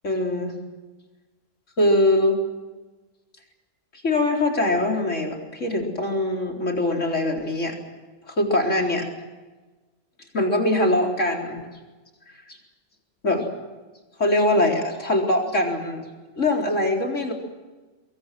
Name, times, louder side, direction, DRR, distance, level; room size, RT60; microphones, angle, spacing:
voice 1, 0.0-0.6 1.8-2.4 4.0-7.8 8.3-9.1 10.3-11.6 12.5-12.6 13.2-13.5 14.2-16.0 16.4-17.3, left 1 dB, 75° left, 1 dB, 4.5 m, -22 dB
24.0 x 23.0 x 7.7 m, 1.2 s
omnidirectional pair, 1.3 m